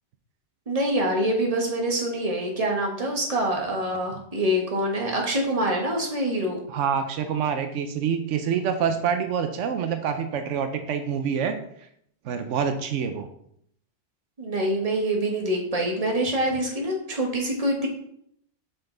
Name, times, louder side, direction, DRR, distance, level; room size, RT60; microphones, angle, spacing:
voice 1, 0.7-6.6 14.4-17.9, right 1 dB, 30° right, 1 dB, 1.3 m, -25 dB
voice 2, 6.7-11.5 12.2-13.3, right 7 dB, 85° right, 7 dB, 1.0 m, -26 dB
5.7 x 5.5 x 3.8 m, 0.70 s
omnidirectional pair, 1.2 m